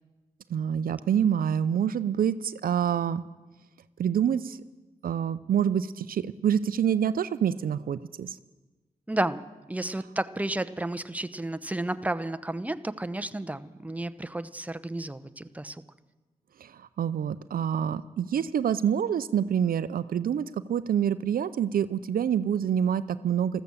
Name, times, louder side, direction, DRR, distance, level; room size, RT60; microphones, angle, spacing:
voice 1, 0.5-3.2 4.0-4.6 5.0-8.4 16.6-23.6, right 8 dB, 70° right, 15 dB, 0.5 m, -27 dB
voice 2, 9.1-15.8, right 1 dB, 10° right, 12 dB, 0.9 m, -32 dB
14.0 x 14.0 x 7.1 m, 1.2 s
supercardioid pair, 40°, 15 cm